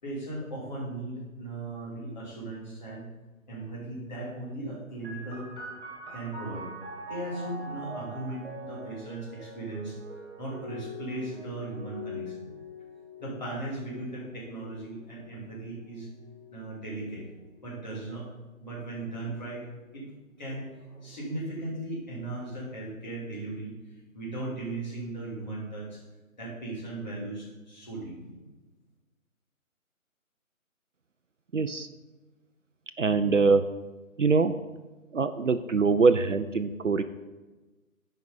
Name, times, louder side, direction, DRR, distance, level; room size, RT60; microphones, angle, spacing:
voice 1, 0.0-3.1 3.5-5.5 6.1-6.7 7.1-10.0 10.4-12.5 13.2-16.1 16.5-17.3 17.6-18.3 18.6-19.7 19.9-20.1 20.4-23.7 24.1-26.0 26.4-28.4, right 2 dB, 30° left, -6 dB, 2.9 m, -37 dB
sound 1, 5.0-18.3 19.1-19.9, left 1 dB, 35° right, 2.7 m, -44 dB
voice 2, 31.5-31.9 33.0-33.6 34.2-34.5 35.1-37.0, right 4 dB, 60° right, 11 dB, 0.6 m, -23 dB
9.2 x 5.4 x 5.5 m, 1.2 s
figure-of-eight pair, 155°, 42 cm